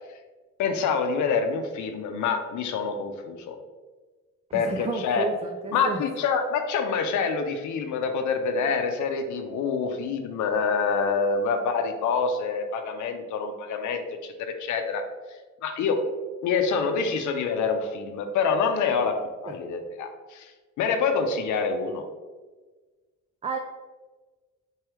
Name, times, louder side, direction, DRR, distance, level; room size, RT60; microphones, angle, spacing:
voice 1, 0.6-3.6 4.5-5.3 5.7-15.0 15.6-16.0 16.4-20.5 20.8-22.1, left 5 dB, 75° left, 6 dB, 0.6 m, -26 dB
voice 2, 4.5-6.0 19.5-19.6 23.4-23.6, right 4 dB, 20° right, 4 dB, 0.3 m, -32 dB
4.5 x 3.3 x 3.0 m, 1.3 s
cardioid pair, 90°, 30 cm